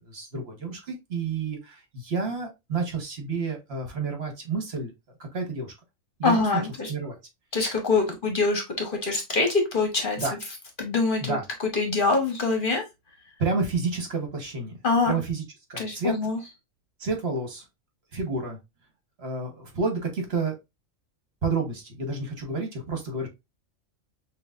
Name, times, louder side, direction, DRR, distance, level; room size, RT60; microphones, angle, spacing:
voice 1, 0.0-4.9 5.2-5.7 6.2-6.5 6.9-7.2 10.2-10.3 11.2-11.4 13.4-14.7 15.0-15.4 15.7-16.2 17.0-17.7 18.1-18.6 19.2-20.5 21.4-23.3, right 4 dB, 55° right, 1.4 m, -30 dB
voice 2, 6.2-6.9 7.5-10.4 10.8-11.4 11.7-12.8 14.8-15.2 15.8-16.4, left 3 dB, 45° left, 1.0 m, -24 dB
6.2 x 2.4 x 2.4 m
omnidirectional pair, 1.3 m